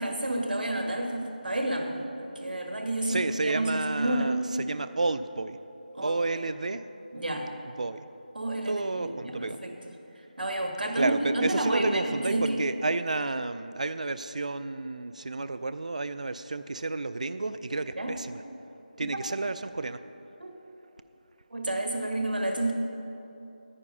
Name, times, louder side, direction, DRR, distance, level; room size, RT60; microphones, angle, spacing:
voice 1, 0.0-4.3 5.9-6.2 7.1-7.5 8.3-9.7 10.4-12.6 18.0-18.2 20.4-20.5 21.5-22.7, right 1 dB, 85° right, 3 dB, 1.6 m, -30 dB
voice 2, 3.1-5.6 6.0-6.8 7.8-8.0 8.7-9.6 11.0-18.4 19.0-20.0, right 3 dB, 50° right, 12 dB, 0.4 m, -31 dB
9.8 x 9.7 x 5.4 m, 2.9 s
figure-of-eight pair, 175°, 5 cm